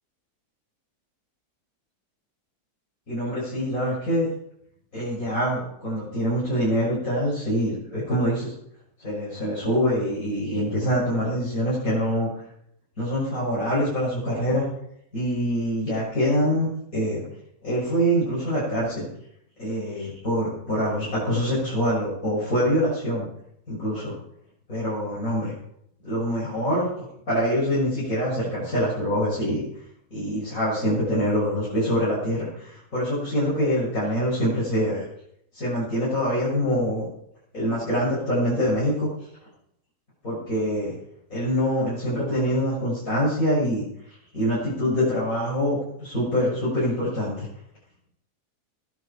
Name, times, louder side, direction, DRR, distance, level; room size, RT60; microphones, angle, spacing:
voice 1, 3.1-4.3 4.9-8.5 9.0-12.3 13.0-14.7 15.1-17.2 17.6-19.1 19.6-23.3 23.7-24.2 24.7-25.5 26.0-26.9 27.3-29.6 30.1-35.1 35.5-37.1 37.5-39.1 40.2-40.9 41.3-43.8 44.3-47.5, equal, 55° left, -8 dB, 7.2 m, -25 dB
21.5 x 10.0 x 4.5 m, 0.73 s
omnidirectional pair, 1.7 m